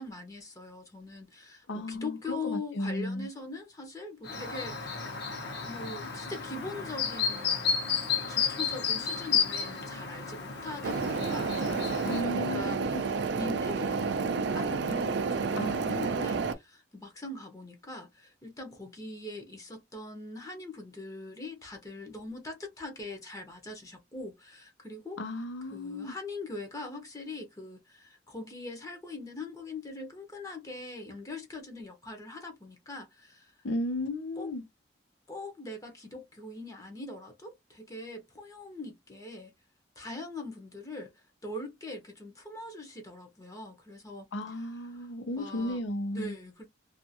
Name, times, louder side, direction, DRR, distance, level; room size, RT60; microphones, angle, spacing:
voice 1, 0.0-5.2 5.6-25.2 25.7-33.5 34.4-34.5 35.3-39.5 40.0-44.6 44.9-45.1 45.4-45.8 46.1-46.7, left 2 dB, 20° left, 0.7 m, -42 dB
voice 2, 1.7-3.3 12.1-13.0 15.6-16.4 25.2-26.1 33.6-34.6 44.3-46.3, left 1 dB, 85° left, 0.6 m, -35 dB
Chirp tweet, 4.2-12.2, left 6 dB, 60° left, 0.9 m, -32 dB
sound 1, 10.8-16.5, right 4 dB, 70° right, 0.4 m, -30 dB
2.5 x 2.4 x 2.7 m
head